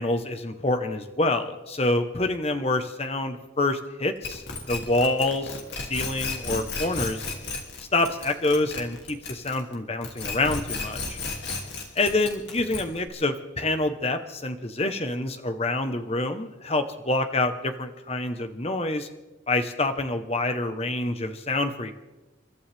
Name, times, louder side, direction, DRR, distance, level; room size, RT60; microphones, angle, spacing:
voice 1, 0.0-4.4 4.7-7.2 7.9-11.2 11.9-19.1 19.5-22.0, left 2 dB, 30° left, 7 dB, 1.1 m, -27 dB
sound 1, 4.2-9.7 10.0-13.1, left 3 dB, 55° left, 2.8 m, -33 dB
30.0 x 13.0 x 3.5 m, 1.1 s
head